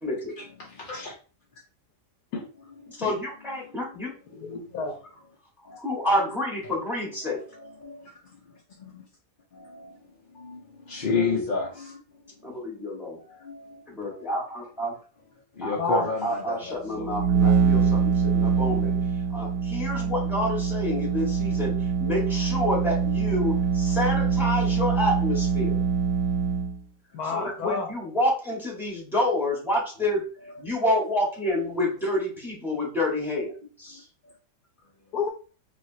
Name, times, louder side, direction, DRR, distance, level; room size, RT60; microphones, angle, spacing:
voice 1, 0.0-0.4 3.0-4.1 5.8-7.4 12.4-13.2 13.9-14.9 15.6-18.9 19.3-25.8 27.3-30.2 30.6-34.0, left 1 dB, ahead, -2 dB, 1.3 m, -28 dB
voice 2, 0.7-1.1 5.7-6.1 7.8-8.1 8.8-9.0 9.5-9.9 10.3-12.0 13.3-14.3 15.6-17.1, left 3 dB, 45° left, -3 dB, 0.7 m, -32 dB
voice 3, 4.3-5.0 11.1-11.5 15.8-16.1 27.1-27.9 35.1-35.3, left 5 dB, 65° left, 3 dB, 1.2 m, -30 dB
sound 1, 16.9-26.8, right 6 dB, 90° right, 1.2 m, -24 dB
4.9 x 2.8 x 2.7 m, 0.37 s
omnidirectional pair, 1.8 m